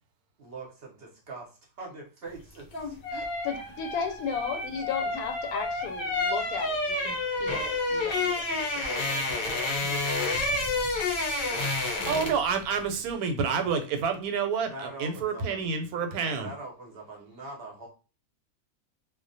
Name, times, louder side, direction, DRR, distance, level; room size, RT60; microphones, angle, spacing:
voice 1, 0.4-3.6 3.9-4.4 14.6-17.9, right 3 dB, 55° right, -1 dB, 0.7 m, -44 dB
sound 1, 2.5-12.5 12.8-13.0, left 2 dB, 60° left, 0.5 m, -30 dB
voice 2, 3.4-7.1 7.4-8.4 8.7-10.3, left 6 dB, 90° left, 5 dB, 1.1 m, -35 dB
voice 3, 12.1-16.5, right 6 dB, 85° right, 6 dB, 1.1 m, -28 dB
2.3 x 2.1 x 2.6 m, 0.35 s
omnidirectional pair, 1.5 m